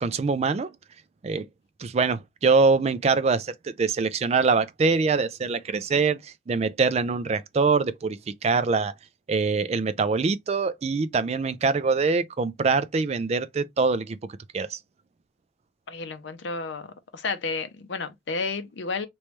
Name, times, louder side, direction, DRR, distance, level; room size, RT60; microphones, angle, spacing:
voice 1, 0.0-0.7 1.2-1.5 1.8-8.9 9.3-14.2 14.5-14.8, right 4 dB, 35° right, 0.3 m, -24 dB
voice 2, 15.9-16.9 17.1-19.1, left 4 dB, 70° left, 0.6 m, -31 dB
3.2 x 3.0 x 3.1 m
head